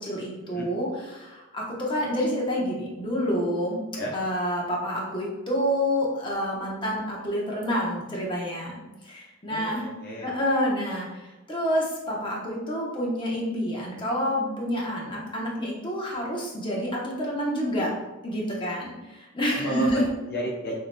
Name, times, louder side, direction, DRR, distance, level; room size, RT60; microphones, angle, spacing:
voice 1, 0.0-3.8 4.1-9.9 10.2-17.9 18.2-20.0, equal, 25° left, -3 dB, 0.9 m, -28 dB
voice 2, 9.5-10.4 19.6-20.8, right 1 dB, 50° left, -2 dB, 0.6 m, -33 dB
6.6 x 2.9 x 2.2 m, 1.1 s
head